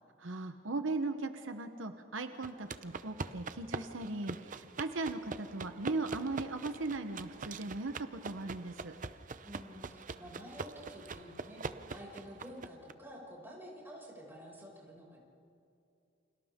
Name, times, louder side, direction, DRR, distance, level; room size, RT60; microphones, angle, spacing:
voice 1, 0.2-8.9, right 3 dB, 85° right, 7 dB, 1.1 m, -38 dB
sound 1, 2.4-12.9, right 4 dB, 45° right, 0.7 m, -43 dB
voice 2, 9.4-11.6 11.9-15.2, equal, 10° right, -4 dB, 6.4 m, -50 dB
29.5 x 27.0 x 3.8 m, 2.5 s
head